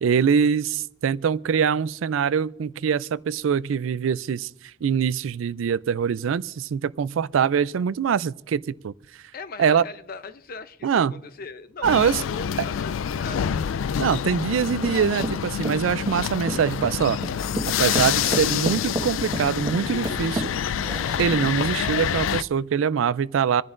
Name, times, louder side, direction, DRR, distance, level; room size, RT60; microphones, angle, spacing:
voice 1, 0.0-4.5 4.8-8.9 9.6-9.8 10.8-11.1 11.8-12.2 14.0-17.2 17.8-20.5 21.2-23.6, right 7 dB, 85° right, 0.4 m, -23 dB
voice 2, 9.3-13.5, left 4 dB, 50° left, 0.6 m, -39 dB
sound 1, 11.8-22.4, left 8 dB, 85° left, 0.4 m, -27 dB
sound 2, 14.8-21.6, right 1 dB, 20° right, 1.3 m, -32 dB
27.0 x 10.5 x 2.5 m
head